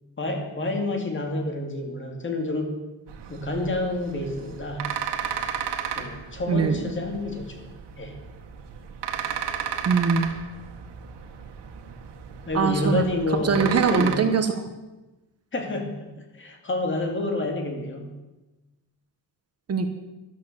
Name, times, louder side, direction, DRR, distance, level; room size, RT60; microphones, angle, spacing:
voice 1, 0.2-2.7 3.3-4.9 6.0-7.7 8.0-8.2 12.5-14.3 15.5-18.2, left 2 dB, 30° left, 3 dB, 2.3 m, -29 dB
sound 1, 3.1-14.1, right 8 dB, 85° right, 1.7 m, -34 dB
voice 2, 9.8-10.4 12.5-13.0 13.4-14.5 19.7-19.9, right 5 dB, 35° right, 7 dB, 1.0 m, -22 dB
13.5 x 12.0 x 6.8 m, 1.1 s
wide cardioid pair, 175°, 41 cm